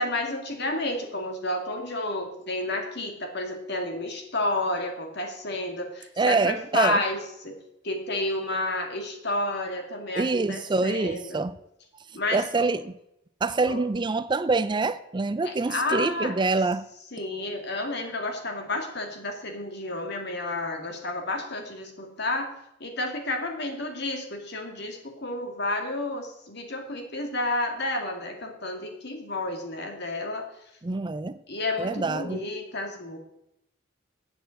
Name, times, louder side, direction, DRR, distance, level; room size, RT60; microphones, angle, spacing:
voice 1, 0.0-7.2 7.4-7.6 7.8-11.4 12.1-12.7 13.7-13.8 15.4-16.3 17.1-22.5 22.8-30.4 31.5-33.2, left 2 dB, 60° left, 2.4 m, -31 dB
voice 2, 6.2-7.0 10.2-11.6 12.3-12.9 13.4-16.9 30.8-31.4 31.8-32.4, right 3 dB, 25° right, 0.4 m, -25 dB
9.0 x 8.0 x 7.7 m
head